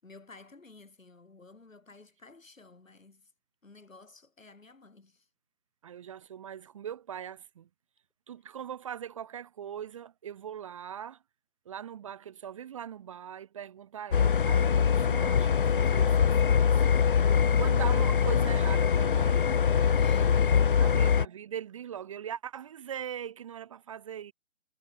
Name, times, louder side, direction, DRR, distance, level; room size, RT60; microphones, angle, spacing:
voice 1, 0.0-3.3 3.6-5.3 20.0-20.7, left 3 dB, 90° left, 6.0 m, -53 dB
voice 2, 5.8-7.7 8.3-11.2 11.6-16.8 17.2-19.6 20.7-24.3, right 9 dB, 25° right, 0.9 m, -41 dB
sound 1, 14.1-21.2, left 7 dB, 45° left, 0.4 m, -23 dB
figure-of-eight pair, 150°, 38 cm